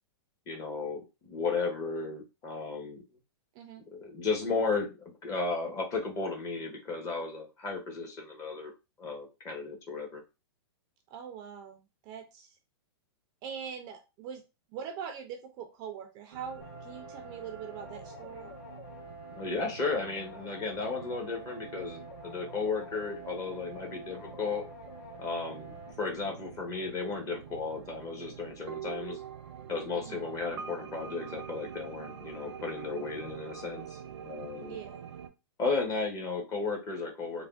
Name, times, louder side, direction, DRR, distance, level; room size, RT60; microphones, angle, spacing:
voice 1, 0.5-3.0 3.9-8.7 9.0-10.2 19.3-24.6 25.2-29.2 29.7-34.8 35.6-37.5, left 4 dB, 25° left, 2 dB, 0.9 m, -34 dB
voice 2, 11.1-12.5 13.4-14.4 14.7-18.5 29.9-30.2 34.7-35.0, right 7 dB, 30° right, 4 dB, 0.4 m, -42 dB
sound 1, 16.3-35.3, right 8 dB, 90° right, 0.6 m, -46 dB
sound 2, 16.6-25.9, left 1 dB, 60° left, 1.3 m, -48 dB
3.3 x 2.1 x 2.4 m, 0.27 s
hypercardioid pair, 145°, 14 cm